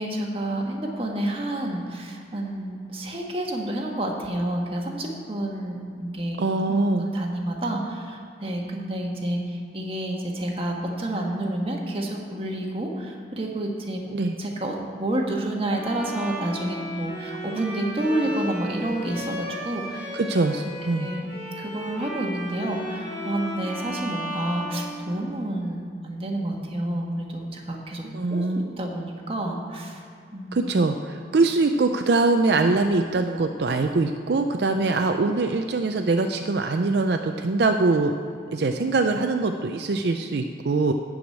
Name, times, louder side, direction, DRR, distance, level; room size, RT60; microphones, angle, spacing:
voice 1, 0.0-6.4 6.7-14.1 14.4-20.1 20.9-28.0 28.3-28.4 28.8-30.0 30.3-30.7, right 1 dB, 30° right, 0 dB, 1.4 m, -29 dB
voice 2, 6.4-7.1 14.1-14.3 20.1-21.1 28.1-28.7 30.5-38.1 38.5-40.9, right 3 dB, 70° right, 5 dB, 0.5 m, -23 dB
Bowed string instrument, 15.7-25.5, equal, 10° right, 3.3 m, -35 dB
12.0 x 4.9 x 8.4 m, 2.4 s
head